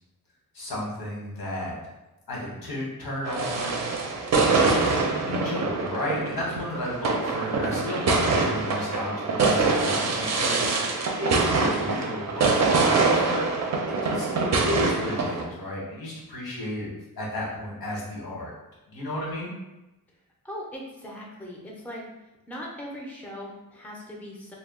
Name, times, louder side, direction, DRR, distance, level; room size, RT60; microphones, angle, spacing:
voice 1, 0.5-1.7 2.3-3.9 4.4-13.5 13.8-16.9 17.2-18.5 18.9-19.5, left 1 dB, 85° left, -4 dB, 1.1 m, -33 dB
sound 1, 3.2-15.4, right 3 dB, 50° right, 0.5 m, -24 dB
voice 2, 20.4-22.1 22.5-24.6, equal, 5° left, -2 dB, 0.4 m, -39 dB
2.2 x 2.1 x 3.5 m, 0.98 s
wide cardioid pair, 120°, 35 cm